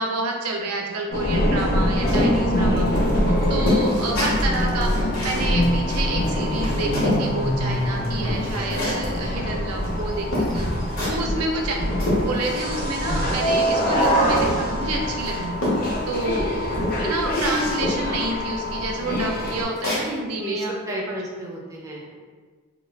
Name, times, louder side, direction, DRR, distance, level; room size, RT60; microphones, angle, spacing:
voice 1, 0.0-2.9 3.5-10.7 11.1-15.5 16.1-20.7 21.0-21.5, right 2 dB, 85° right, 1 dB, 0.4 m, -29 dB
sound 1, 1.1-19.6, equal, 40° left, 0.4 m, -24 dB
sound 2, 2.1-7.3 7.7-9.2 9.8-9.9 10.3-11.3 11.7-12.8 13.1-14.8 15.2-16.2 16.6-18.1 18.6-18.7 19.1-20.1, left 1 dB, 65° left, 0.8 m, -27 dB
voice 2, 2.5-3.0 11.6-11.8 16.3-16.6 20.4-22.2, right 1 dB, 15° right, -4 dB, 0.4 m, -33 dB
2.3 x 2.0 x 3.2 m, 1.5 s
head